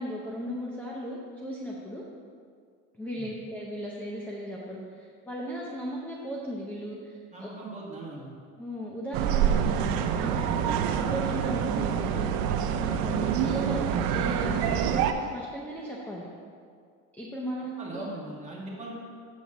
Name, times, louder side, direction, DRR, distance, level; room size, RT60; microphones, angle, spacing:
voice 1, 0.0-2.0 3.0-7.5 8.6-16.3 17.2-18.0, equal, 5° left, -4 dB, 0.6 m, -37 dB
voice 2, 7.3-8.3 11.5-11.6 13.0-13.2 17.8-18.9, right 2 dB, 20° right, -4 dB, 1.6 m, -40 dB
sound 1, 9.1-15.1, right 8 dB, 80° right, 0.6 m, -26 dB
7.4 x 4.1 x 5.9 m, 2.1 s
cardioid pair, 145°, 35 cm